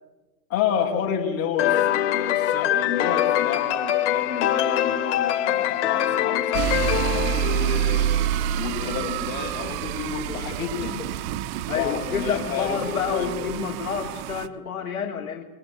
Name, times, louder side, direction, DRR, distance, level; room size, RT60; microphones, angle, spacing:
voice 1, 0.5-11.1 11.7-13.3, left 8 dB, 30° left, 1 dB, 7.1 m, -30 dB
sound 1, 1.6-8.2, left 11 dB, 50° left, 2.2 m, -24 dB
sound 2, 6.5-14.5, right 10 dB, 40° right, 1.4 m, -28 dB
voice 2, 11.7-15.4, left 6 dB, 65° left, 1 dB, 2.9 m, -29 dB
27.0 x 23.0 x 8.2 m, 1.1 s
figure-of-eight pair, 105°, 45 cm